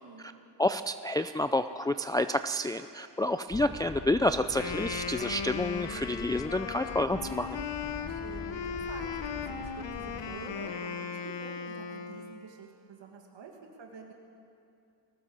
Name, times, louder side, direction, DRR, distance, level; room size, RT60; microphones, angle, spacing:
voice 1, 0.0-0.3 8.0-8.6 8.9-13.5 13.8-14.1, right 5 dB, 85° right, 1 dB, 2.2 m, -48 dB
voice 2, 0.6-7.6, left 1 dB, 10° left, 9 dB, 0.4 m, -29 dB
sound 1, 3.5-10.2, left 2 dB, 55° left, 6.3 m, -44 dB
Wind instrument woodwind instrument, 4.4-12.5, left 7 dB, 80° left, 1.3 m, -37 dB
20.0 x 18.0 x 7.2 m, 2.6 s
cardioid pair, 100°, 42 cm